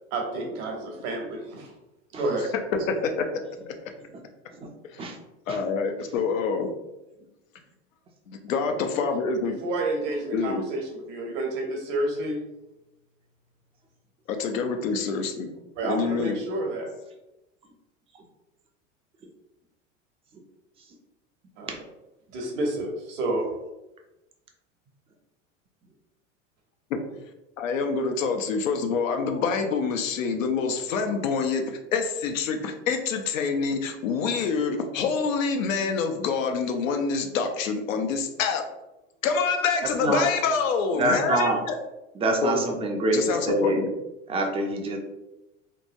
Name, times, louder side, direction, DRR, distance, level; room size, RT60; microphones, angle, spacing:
voice 1, 0.1-1.7 2.1-2.5 9.4-12.4 15.8-16.9 21.6-21.7 22.3-23.5, right 2 dB, 65° right, 1 dB, 1.0 m, -29 dB
voice 2, 2.9-3.8 4.9-5.1 5.5-6.7 8.3-9.6 10.3-10.6 14.3-15.5 15.8-16.4 27.1-27.2 27.6-38.6 39.2-41.8 42.4-42.6 43.1-43.9, left 5 dB, 80° left, 5 dB, 0.6 m, -26 dB
voice 3, 39.8-40.3 41.0-41.6 42.1-43.8 44.3-45.0, right 2 dB, 15° right, 2 dB, 0.4 m, -25 dB
3.0 x 2.1 x 2.5 m, 0.97 s
hypercardioid pair, 95°, 39 cm